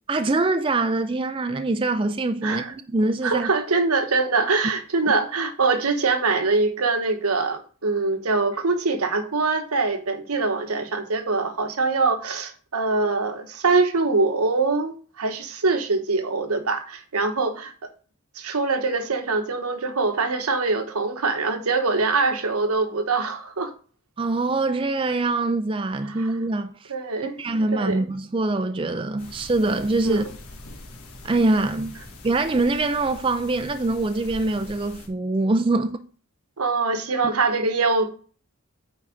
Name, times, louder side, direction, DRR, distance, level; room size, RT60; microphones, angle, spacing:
voice 1, 0.1-3.5 24.2-26.9 27.4-30.2 31.2-32.0 32.2-36.0, right 2 dB, 25° right, 0.4 m, -24 dB
voice 2, 2.4-2.7 3.2-17.7 18.3-23.7 26.1-26.3 26.9-27.4 27.7-28.0 30.0-30.2 36.6-38.1, right 3 dB, 90° right, 1.1 m, -23 dB
sound 1, 29.2-35.1, left 2 dB, 85° left, 1.5 m, -43 dB
8.8 x 4.0 x 5.0 m
head